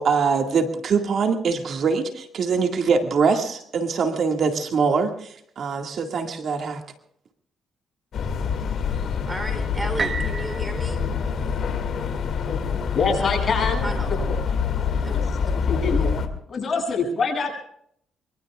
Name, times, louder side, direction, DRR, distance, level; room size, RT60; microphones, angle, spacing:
voice 1, 0.0-5.3 5.6-6.8, right 5 dB, 60° right, 4 dB, 2.0 m, -23 dB
sound 1, 8.1-16.3, left 6 dB, 60° left, 2.3 m, -26 dB
voice 2, 8.7-11.0 13.2-14.1 15.0-15.3, right 1 dB, 15° right, 7 dB, 3.4 m, -35 dB
sound 2, 10.0-13.9 14.5-14.6, right 5 dB, 40° right, 1.2 m, -35 dB
voice 3, 12.9-13.9 15.1-15.2 15.7-16.1 16.5-17.5, left 4 dB, 45° left, 1 dB, 7.6 m, -24 dB
24.0 x 24.0 x 2.4 m, 0.67 s
cardioid pair, 90°, 0 cm